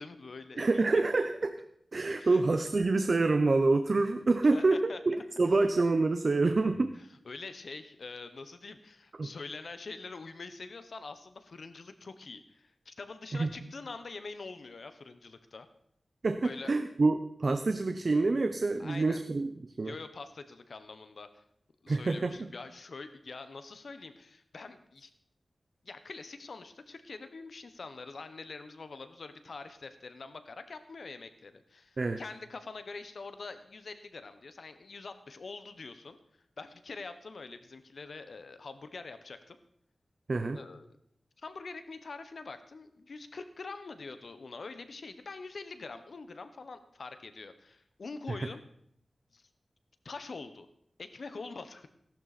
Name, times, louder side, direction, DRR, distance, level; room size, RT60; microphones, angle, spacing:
voice 1, 0.0-1.0 2.2-2.4 4.4-5.5 6.9-15.7 16.4-16.7 18.8-19.2 19.8-21.4 21.8-25.1 25.8-36.2 36.6-39.6 40.5-40.9 41.4-48.6 49.3-49.5 50.0-50.7 51.0-51.9, left 4 dB, 70° left, 10 dB, 1.1 m, -45 dB
voice 2, 0.6-1.6 1.9-6.9 9.2-9.3 13.3-13.5 16.2-19.5 19.8-19.9 21.9-22.4 32.0-32.2 40.3-40.6, right 3 dB, 50° right, 8 dB, 0.8 m, -27 dB
17.5 x 12.0 x 4.3 m, 0.68 s
wide cardioid pair, 100°, 0 cm